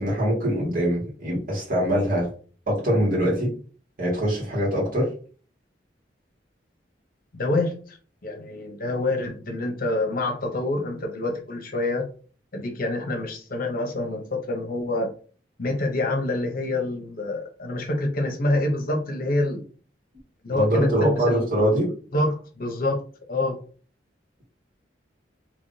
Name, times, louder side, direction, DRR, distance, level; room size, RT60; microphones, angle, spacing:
voice 1, 0.0-2.3 2.7-3.5 4.0-5.1 20.6-21.9, equal, 50° right, -4 dB, 1.8 m, -23 dB
voice 2, 7.3-8.0 8.2-12.1 12.5-15.1 15.6-19.6 20.4-21.4 22.1-23.0 23.3-23.5, left 2 dB, 55° left, 3 dB, 0.8 m, -26 dB
3.5 x 3.0 x 2.7 m, 0.40 s
head